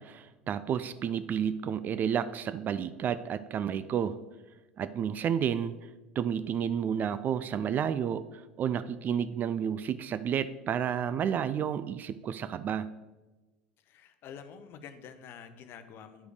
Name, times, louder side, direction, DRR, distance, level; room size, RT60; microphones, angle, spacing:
voice 1, 0.0-4.2 4.8-5.8 6.2-12.9, right 8 dB, 35° right, 14 dB, 0.4 m, -31 dB
voice 2, 13.8-16.3, left 7 dB, 45° left, 10 dB, 0.8 m, -48 dB
9.7 x 4.9 x 4.9 m, 1.1 s
figure-of-eight pair, 75°, 5 cm